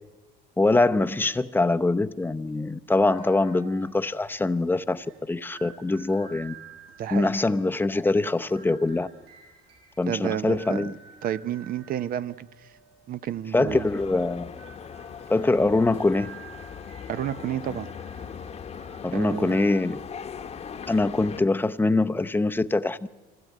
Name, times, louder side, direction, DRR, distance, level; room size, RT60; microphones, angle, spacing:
voice 1, 0.6-6.5 7.1-9.1 10.0-10.9 13.5-14.5 15.3-16.3 19.0-20.0 20.9-23.1, left 2 dB, 10° left, 0.7 m, -23 dB
sound 1, 3.1-19.7, right 5 dB, 80° right, 6.3 m, -51 dB
voice 2, 7.0-7.3 10.1-10.9 11.2-12.7 13.1-13.9 17.1-17.9 19.1-19.6, right 10 dB, 60° right, 0.9 m, -31 dB
sound 2, 13.7-21.4, left 7 dB, 40° left, 1.1 m, -40 dB
25.0 x 16.5 x 9.4 m
cardioid pair, 110°, 17 cm